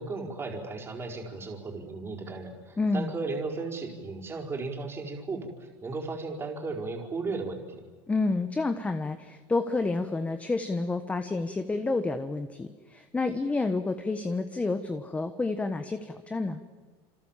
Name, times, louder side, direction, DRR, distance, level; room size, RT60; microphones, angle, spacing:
voice 1, 0.0-7.8, right 3 dB, 20° right, 1 dB, 4.9 m, -35 dB
voice 2, 2.8-3.1 8.1-16.6, left 3 dB, 10° left, 9 dB, 1.2 m, -29 dB
28.0 x 27.0 x 7.5 m, 1.4 s
supercardioid pair, 140°, 12 cm